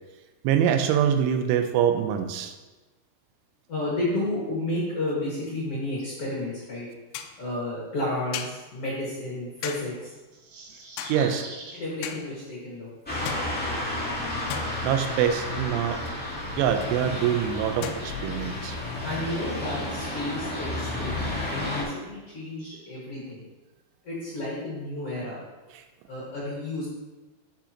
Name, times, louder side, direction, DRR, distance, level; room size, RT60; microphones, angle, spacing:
voice 1, 0.4-2.5 11.1-11.5 13.5-13.6 14.0-14.1 14.8-16.0 16.6-18.8 25.8-25.9, right 9 dB, 90° right, 7 dB, 3.1 m, -24 dB
voice 2, 3.7-6.9 7.4-10.1 11.1-11.4 11.7-13.2 19.0-21.2 21.5-23.4 24.0-25.4 26.1-26.9, left 1 dB, 55° left, -6 dB, 1.7 m, -32 dB
sound 1, 6.0-6.1 7.1-7.5 8.3-8.8 9.6-10.1 11.0-11.5 12.0-12.5 13.3-14.1 14.5-15.3 16.1-16.3 16.8-17.0 17.8-18.0, left 8 dB, 85° left, 2.4 m, -37 dB
City birds before dawn, 10.0-11.8, right 3 dB, 65° right, 2.0 m, -42 dB
Atmo small Street Zuerich, 13.1-21.8, left 1 dB, 15° left, 0.3 m, -32 dB
11.5 x 7.1 x 2.9 m, 1.2 s
omnidirectional pair, 5.4 m